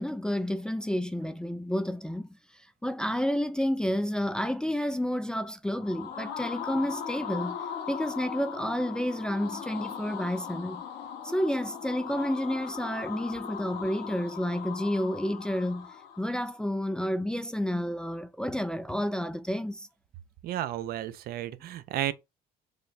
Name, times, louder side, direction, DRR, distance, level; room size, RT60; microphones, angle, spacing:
voice 1, 0.0-2.3 2.8-7.6 7.9-10.8 11.2-15.9 16.2-19.9, equal, 5° left, 0.3 m, -30 dB
sound 1, 5.6-16.5, left 8 dB, 75° left, 1.0 m, -39 dB
voice 2, 20.4-22.1, right 12 dB, 65° right, 0.4 m, -32 dB
4.8 x 2.3 x 2.6 m
cardioid pair, 110°, 17 cm